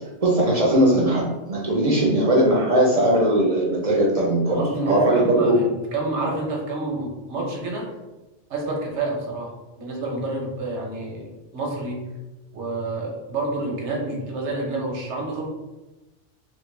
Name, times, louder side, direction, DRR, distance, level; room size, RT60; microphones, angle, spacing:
voice 1, 0.2-5.6, right 1 dB, 45° right, -3 dB, 0.5 m, -19 dB
voice 2, 4.5-5.6 5.9-7.9 8.5-9.5 9.8-12.1 12.5-15.5, right 2 dB, 80° right, 0 dB, 1.0 m, -28 dB
3.5 x 2.1 x 3.2 m, 1.1 s
omnidirectional pair, 1.2 m